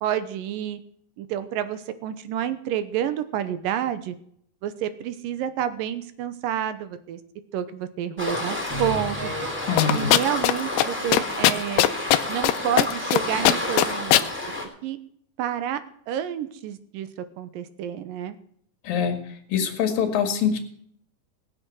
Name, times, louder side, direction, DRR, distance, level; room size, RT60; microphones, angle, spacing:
voice 1, 0.0-0.8 1.2-4.1 4.6-7.2 7.5-9.3 9.9-11.8 12.3-14.3 14.8-15.0 15.4-15.8 16.1-17.1 17.4-18.4, right 10 dB, 75° right, 11 dB, 2.4 m, -29 dB
Waves surf, 8.2-14.6, left 1 dB, 5° right, 2.9 m, -30 dB
sound 1, 8.7-11.4 11.8-11.9 12.3-12.4 12.8-12.9, equal, 40° right, 1.7 m, -36 dB
voice 2, 9.7-10.1 18.9-19.2 19.5-20.6, left 7 dB, 70° left, 5 dB, 3.7 m, -23 dB
sound 2, 9.8-10.5 10.8-10.9 11.1-12.5 12.8-13.2 13.4-14.3, left 15 dB, 85° left, 2.6 m, -18 dB
19.0 x 8.1 x 6.3 m, 0.65 s
omnidirectional pair, 4.4 m